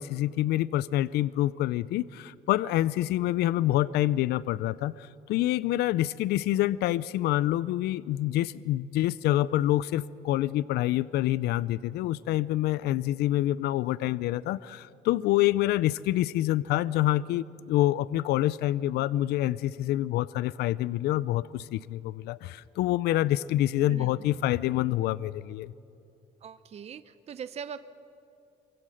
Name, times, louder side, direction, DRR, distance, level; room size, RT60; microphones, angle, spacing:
voice 1, 0.0-25.7, left 14 dB, 75° left, 18 dB, 0.5 m, -27 dB
voice 2, 23.8-24.1 26.4-27.8, right 7 dB, 40° right, 12 dB, 0.8 m, -40 dB
27.5 x 24.0 x 6.5 m, 2.7 s
cardioid pair, 110°, 17 cm